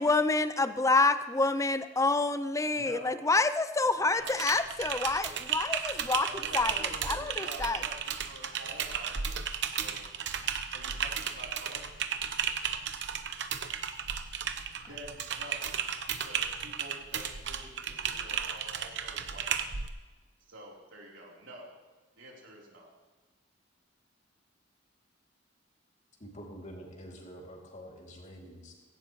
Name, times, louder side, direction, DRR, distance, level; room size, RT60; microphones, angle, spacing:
voice 1, 0.0-6.3 6.5-7.8, left 3 dB, 15° left, 12 dB, 0.5 m, -27 dB
voice 2, 2.8-3.2 4.1-4.5 5.2-5.3 6.2-9.4 9.7-10.0 10.7-11.9 14.8-15.8 16.1-19.5 20.5-21.7 22.2-22.9, right 1 dB, 85° right, -3 dB, 3.7 m, -48 dB
Typing, 4.2-19.9, right 7 dB, 65° right, 0.9 m, -34 dB
voice 3, 26.2-28.7, equal, 40° left, 0 dB, 2.7 m, -47 dB
17.0 x 16.0 x 3.1 m, 1.2 s
head